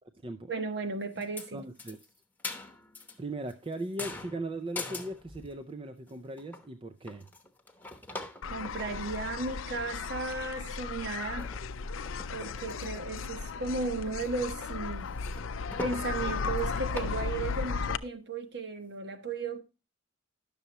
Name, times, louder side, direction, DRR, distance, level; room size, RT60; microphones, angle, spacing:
voice 1, 0.5-1.6 8.5-11.5 12.3-15.1 15.8-19.6, right 3 dB, 55° right, 1.1 m, -35 dB
sound 1, 1.1-1.5 1.8-3.2 3.5-5.6 6.1-6.2 6.4-6.7 7.1-9.6 10.1-10.2 10.4-10.8 11.3-11.6 12.1-13.0 13.3-13.4 13.8-14.3 14.6-14.7 15.0-16.1 16.5-16.6 16.9-17.2, left 3 dB, 10° left, 0.9 m, -43 dB
voice 2, 1.5-2.0 3.2-7.3, right 1 dB, 25° right, 0.4 m, -38 dB
sound 2, 8.4-18.0, left 5 dB, 75° left, 0.5 m, -35 dB
11.0 x 6.7 x 2.9 m
head